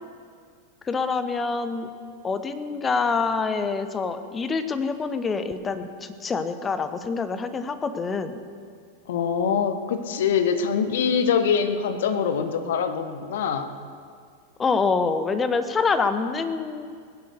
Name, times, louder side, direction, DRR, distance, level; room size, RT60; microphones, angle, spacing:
voice 1, 0.8-1.9 2.2-8.4 14.6-16.9, left 4 dB, 20° left, 10 dB, 1.1 m, -26 dB
voice 2, 9.1-13.7, left 6 dB, 55° left, 9 dB, 1.3 m, -24 dB
19.0 x 10.5 x 6.8 m, 2.1 s
figure-of-eight pair, 90°, 0 cm